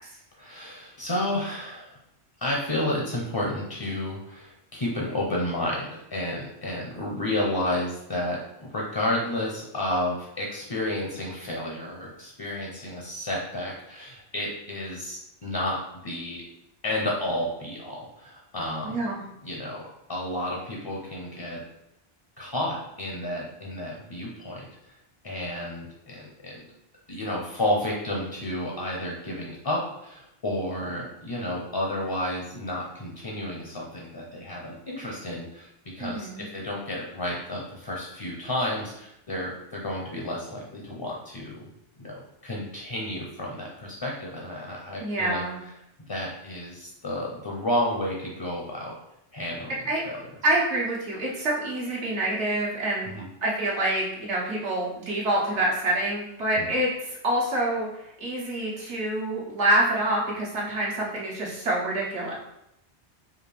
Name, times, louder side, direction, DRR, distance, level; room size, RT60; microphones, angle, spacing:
voice 1, 0.4-2.0 2.4-16.4 16.8-19.0 19.4-21.6 22.4-25.0 25.2-26.7 27.1-41.7 42.0-45.4 46.1-48.9 49.3-50.3 53.0-53.3 56.6-56.7, left 1 dB, 30° left, -2 dB, 0.5 m, -31 dB
voice 2, 18.8-19.2 36.0-36.4 45.0-45.6 49.9-50.0 50.4-53.1 53.4-56.9 57.2-57.9 58.2-62.4, right 1 dB, 80° right, -4 dB, 1.4 m, -26 dB
4.8 x 2.5 x 3.3 m, 0.85 s
omnidirectional pair, 1.2 m